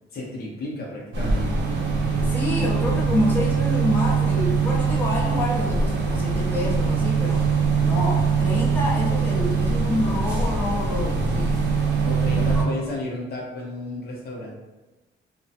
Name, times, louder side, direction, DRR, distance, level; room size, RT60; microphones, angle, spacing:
voice 1, 0.1-1.6 12.0-14.5, left 2 dB, 50° left, -2 dB, 0.8 m, -33 dB
sound 1, 1.1-12.6, right 5 dB, 70° right, 0.6 m, -22 dB
voice 2, 2.2-7.4 7.8-11.5 12.5-12.7, left 1 dB, 10° left, -4 dB, 0.6 m, -27 dB
3.0 x 2.1 x 2.7 m, 1.1 s
cardioid pair, 90°, 20 cm